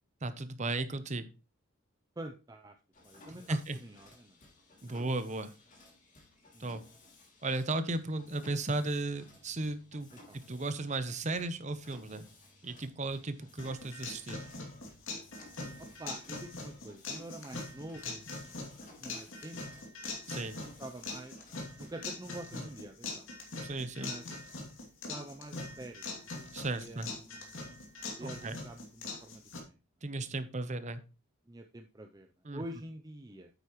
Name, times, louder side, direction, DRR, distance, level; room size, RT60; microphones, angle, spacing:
voice 1, 0.2-1.3 3.3-3.8 4.8-5.5 6.6-6.8 7.4-12.2 12.6-14.4 18.0-18.2 20.3-20.6 22.6-22.7 23.6-24.1 26.5-27.1 28.2-28.6 30.0-31.0 32.4-32.6, right 2 dB, 35° right, 11 dB, 0.8 m, -35 dB
voice 2, 2.2-2.8 3.0-3.6 3.8-4.3 4.8-5.1 6.5-6.7 10.3-10.4 15.8-18.0 18.4-18.7 19.0-19.6 20.3-21.3 21.8-23.3 24.0-24.2 25.1-26.3 26.7-27.8 28.2-29.4 29.7-29.8 31.5-32.3 32.5-33.5, right 1 dB, 20° right, 5 dB, 0.5 m, -46 dB
Mechanisms, 2.9-22.0, left 2 dB, 35° left, 2.6 m, -58 dB
sound 1, 13.6-29.6, left 3 dB, 65° left, 2.7 m, -42 dB
9.1 x 8.4 x 3.1 m, 0.32 s
head